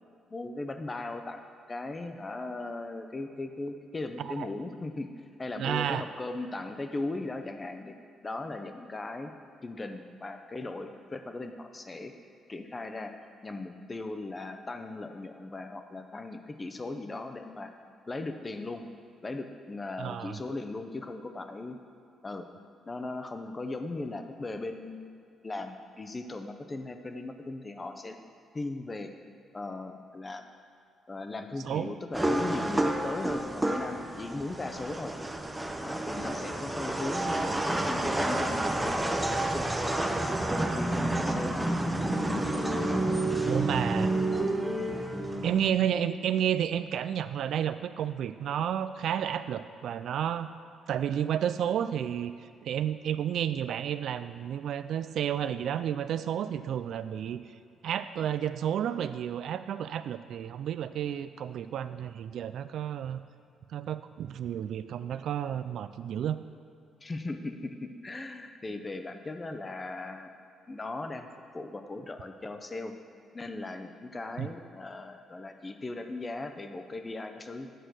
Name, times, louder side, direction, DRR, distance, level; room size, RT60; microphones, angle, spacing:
voice 1, 0.3-7.9 8.2-9.3 9.6-12.1 12.5-13.1 13.4-17.7 18.1-18.8 19.2-21.8 22.2-22.5 22.9-25.1 25.4-28.2 28.5-29.1 29.5-30.4 31.1-35.1 35.8-39.6 40.6-41.8 42.2-42.4 67.0-70.3 70.7-71.3 71.5-72.9 73.3-77.7, left 2 dB, 25° left, 7 dB, 0.7 m, -38 dB
voice 2, 5.6-6.0 20.0-20.4 31.6-31.9 43.5-44.1 45.4-50.5 50.9-52.3 52.6-57.4 57.8-63.2 63.7-66.4 74.4-74.5, right 9 dB, 70° right, 12 dB, 0.3 m, -31 dB
sound 1, 32.1-45.7, right 1 dB, 10° right, 0.7 m, -29 dB
9.2 x 4.3 x 6.4 m, 2.4 s
cardioid pair, 90°, 0 cm